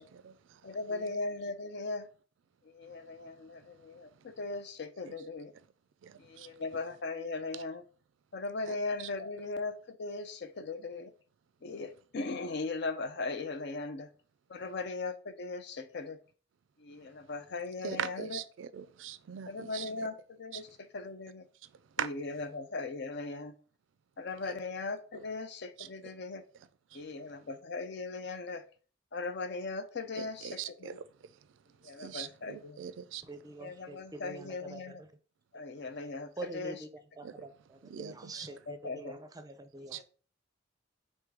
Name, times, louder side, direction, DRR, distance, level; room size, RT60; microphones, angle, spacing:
voice 1, 0.0-0.6 0.9-1.1 5.0-5.1 6.0-6.5 7.5-7.6 8.7-9.1 17.8-20.1 20.5-20.6 22.0-22.1 25.1-25.2 25.8-26.1 26.5-27.0 30.1-31.0 31.8-33.2 37.2-37.5 37.8-38.5 39.9-40.0, right 8 dB, 75° right, 0.4 m, -42 dB
voice 2, 0.6-2.1 2.7-5.5 6.2-7.8 8.3-11.1 11.6-14.1 14.5-16.2 16.8-18.4 19.5-20.7 20.9-21.5 22.0-23.5 24.2-26.4 26.9-28.6 29.1-31.0 31.8-32.8 33.6-35.0 35.5-36.8 38.7-39.2 39.9-40.0, left 3 dB, 60° left, 0.5 m, -38 dB
voice 3, 33.3-35.1 36.4-36.9 37.2-40.0, right 2 dB, 20° right, 0.5 m, -45 dB
3.6 x 3.1 x 4.7 m
head